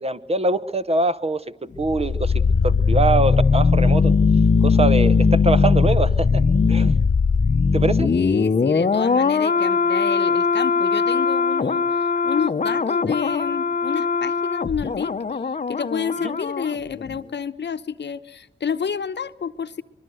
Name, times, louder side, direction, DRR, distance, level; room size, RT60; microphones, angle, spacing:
voice 1, 0.0-1.4 1.8-2.3 2.6-4.1 4.6-6.4 6.7-6.9 7.7-8.1 16.2-16.3, right 3 dB, 30° right, 13 dB, 0.9 m, -23 dB
sound 1, 1.7-16.7 17.0-17.2, left 5 dB, 40° left, 0.8 m, -20 dB
voice 2, 8.0-15.4 15.7-19.8, left 6 dB, 65° left, 11 dB, 1.0 m, -29 dB
24.0 x 22.0 x 7.8 m, 0.92 s
wide cardioid pair, 100°, 20 cm